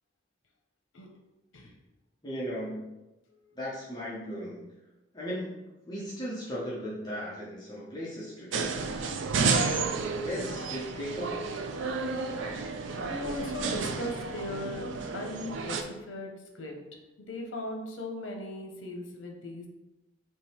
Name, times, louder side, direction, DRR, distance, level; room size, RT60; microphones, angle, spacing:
voice 1, 2.2-2.9 3.6-4.6 5.1-8.8 9.1-9.2 9.6-11.5, equal, 20° left, -8 dB, 0.9 m, -37 dB
sound 1, 8.5-15.8, right 4 dB, 70° right, 0.4 m, -31 dB
voice 2, 13.0-14.8 15.1-16.8 17.3-19.7, left 1 dB, 75° left, 2 dB, 0.9 m, -38 dB
3.8 x 2.9 x 4.4 m, 1.0 s
head